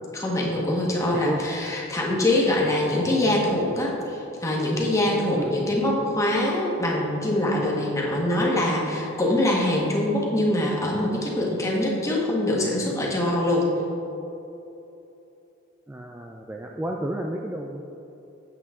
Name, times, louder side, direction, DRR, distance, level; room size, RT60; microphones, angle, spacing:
voice 1, 0.1-13.7, left 1 dB, 15° left, -3 dB, 1.4 m, -24 dB
voice 2, 15.9-17.8, right 1 dB, 10° right, 0 dB, 0.3 m, -31 dB
8.1 x 8.1 x 3.7 m, 2.9 s
head